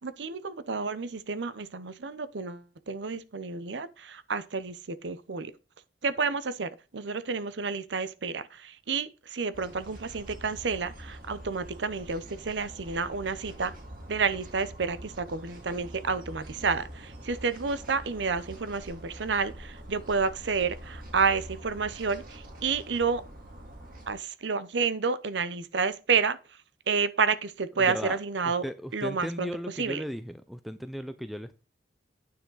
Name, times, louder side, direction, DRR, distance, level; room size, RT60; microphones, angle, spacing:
voice 1, 0.0-5.5 6.0-13.7 14.1-23.2 24.1-26.4 26.9-28.6 28.9-29.5 29.8-30.0, right 5 dB, 85° right, 0.7 m, -30 dB
sound 1, 9.5-24.1, right 1 dB, 50° right, 2.2 m, -45 dB
voice 2, 27.8-28.2 28.6-31.5, equal, ahead, 0.4 m, -36 dB
9.6 x 6.3 x 4.0 m
head